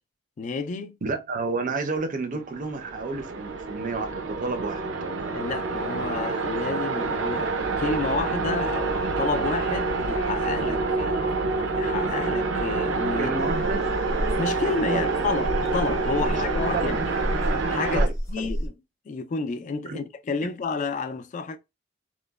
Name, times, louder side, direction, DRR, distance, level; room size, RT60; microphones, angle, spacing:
voice 1, 0.4-1.0 5.3-11.4 11.8-13.3 14.4-17.0 17.7-18.7 19.1-21.6, left 4 dB, 40° left, 0.3 m, -30 dB
voice 2, 1.0-4.9 13.2-13.8 14.9-15.1 16.2-16.3 16.7-17.1 17.9-18.5 19.9-20.0, right 3 dB, 45° right, 0.5 m, -30 dB
sound 1, 2.5-18.1, right 3 dB, 85° right, 0.6 m, -27 dB
sound 2, 7.6-17.8, left 1 dB, 80° left, 0.6 m, -40 dB
sound 3, 13.4-18.7, equal, 15° left, 0.7 m, -30 dB
3.0 x 2.0 x 2.2 m
head